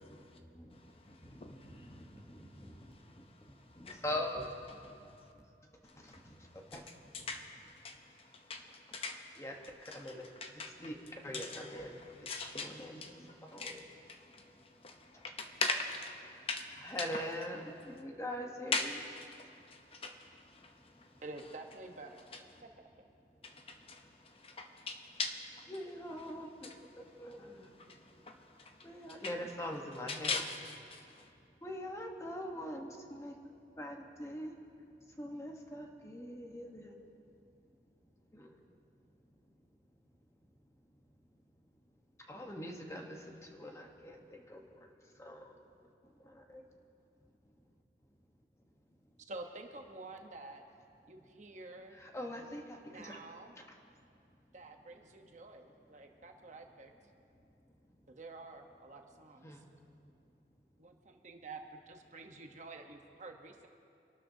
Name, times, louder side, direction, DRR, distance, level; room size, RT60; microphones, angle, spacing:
voice 1, 1.1-2.0 2.9-3.0 3.8-4.0 6.1-6.2 6.7-6.8 7.1-7.5 7.7-9.4 9.8-10.1 10.4-10.9 11.3-11.9 12.3-17.1 18.7-21.1 23.4-25.4 26.6-26.8 27.8-27.9 28.2-29.3 30.1-31.3, left 4 dB, 35° left, 5 dB, 0.7 m, -41 dB
voice 2, 4.0-4.4 9.4-9.5 10.0-10.2 10.8-11.0 11.2-11.9 12.6-12.9 13.5-13.7 16.8-17.6 18.0-18.8 25.7-26.5 27.2-27.4 28.9-30.4 31.6-32.8 33.2-33.3 33.8-34.5 35.2-36.8 42.3-43.0 43.6-43.7 52.1-52.6, left 1 dB, 15° left, 2 dB, 1.1 m, -40 dB
voice 3, 21.2-22.7 49.3-50.6 51.1-52.0 52.3-52.5 52.9-53.6 54.5-56.9 58.1-59.5 60.8-63.7, right 2 dB, 45° right, 3 dB, 1.0 m, -49 dB
25.5 x 12.5 x 2.8 m, 2.6 s
head